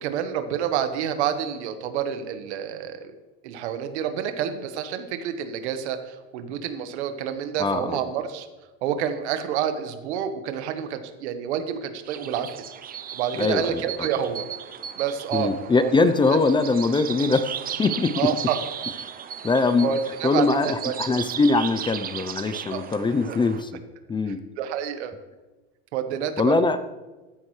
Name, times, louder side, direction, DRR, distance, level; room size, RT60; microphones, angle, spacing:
voice 1, 0.0-3.1 3.4-8.5 8.8-12.6 13.1-14.5 15.0-15.5 15.8-15.9 18.2-18.6 19.8-20.9 22.7-22.8 23.2-23.4 24.3-25.1 25.9-26.6, right 9 dB, 85° right, 8 dB, 1.4 m, -28 dB
voice 2, 7.6-8.0 13.4-13.8 15.3-17.5 17.8-18.2 19.4-19.9 20.2-23.7 24.1-24.4 26.4-26.8, left 3 dB, 15° left, 11 dB, 0.6 m, -22 dB
sound 1, 12.1-23.6, right 9 dB, 25° right, 0.7 m, -36 dB
15.0 x 10.0 x 3.3 m, 1.2 s
supercardioid pair, 125°, 33 cm